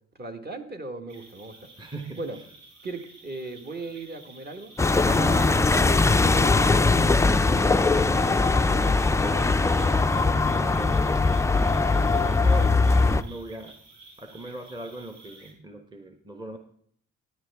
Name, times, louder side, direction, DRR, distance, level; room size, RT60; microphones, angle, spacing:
voice 1, 0.1-1.7 2.2-2.4 2.8-10.4, right 2 dB, 35° right, 5 dB, 1.6 m, -39 dB
sound 1, 1.1-15.5, right 3 dB, 75° right, 4.3 m, -51 dB
voice 2, 1.8-2.2 5.1-5.4 10.4-13.7 14.2-16.6, right 1 dB, 15° right, 5 dB, 1.1 m, -38 dB
sound 2, 4.8-13.2, left 3 dB, 10° left, 0.4 m, -21 dB
14.0 x 9.5 x 3.5 m, 0.62 s
cardioid pair, 90°, 30 cm